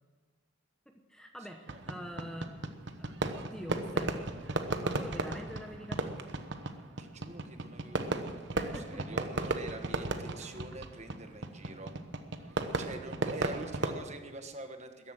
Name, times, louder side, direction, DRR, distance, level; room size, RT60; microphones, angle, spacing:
voice 1, 0.9-2.6 3.0-6.2 8.6-9.6, equal, 5° left, 3 dB, 0.9 m, -45 dB
Fireworks, 1.7-14.0, right 2 dB, 60° right, 1.0 m, -35 dB
voice 2, 7.0-11.9 12.4-15.1, right 2 dB, 35° right, 7 dB, 1.3 m, -45 dB
14.0 x 11.0 x 7.7 m, 1.4 s
head